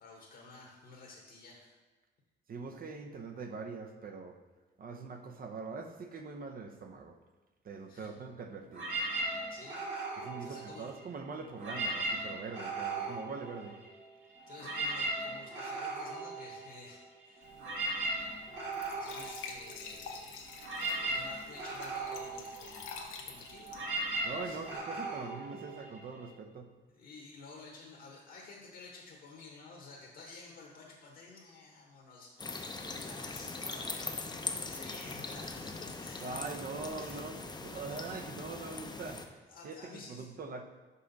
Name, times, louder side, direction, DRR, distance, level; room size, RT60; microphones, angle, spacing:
voice 1, 0.0-1.7 7.9-8.2 9.5-9.8 10.4-10.9 14.2-17.5 18.9-20.5 21.0-24.8 26.9-36.5 36.8-37.3 37.6-38.7 39.5-40.3, left 3 dB, 65° left, -2 dB, 1.2 m, -52 dB
voice 2, 2.5-4.4 4.8-7.2 7.6-8.9 10.2-13.8 24.2-26.7 36.2-39.3 39.6-40.6, right 4 dB, 45° right, 5 dB, 0.7 m, -43 dB
sound 1, 8.7-11.1 11.5-14.1 14.3-26.3, right 2 dB, 75° right, 1.5 m, -38 dB
Glass / Trickle dribble / Fill (with liquid), 17.4-24.8, left 5 dB, 90° left, 0.8 m, -48 dB
sound 2, 32.4-39.3, left 3 dB, 20° left, 0.6 m, -41 dB
5.5 x 5.0 x 4.0 m, 1.3 s
cardioid pair, 90°, 20 cm